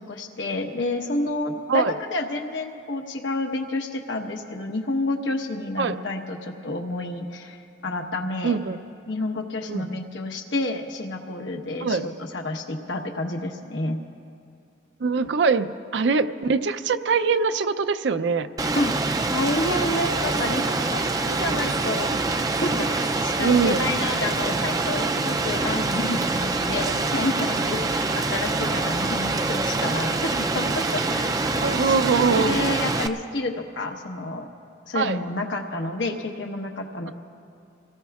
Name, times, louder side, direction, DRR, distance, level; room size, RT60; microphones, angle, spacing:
voice 1, 0.0-8.6 9.1-14.0 18.7-18.9 19.3-22.2 22.6-32.1 32.3-34.5 34.9-37.1, left 2 dB, 90° left, 2 dB, 1.1 m, -29 dB
voice 2, 8.4-8.8 9.7-9.9 11.8-12.0 15.0-18.5 23.4-23.9 31.6-32.6 34.9-35.2, right 5 dB, 75° right, 10 dB, 0.5 m, -22 dB
Rain, 18.6-33.1, right 3 dB, 20° right, 0.3 m, -25 dB
27.0 x 18.0 x 2.4 m, 2.4 s
head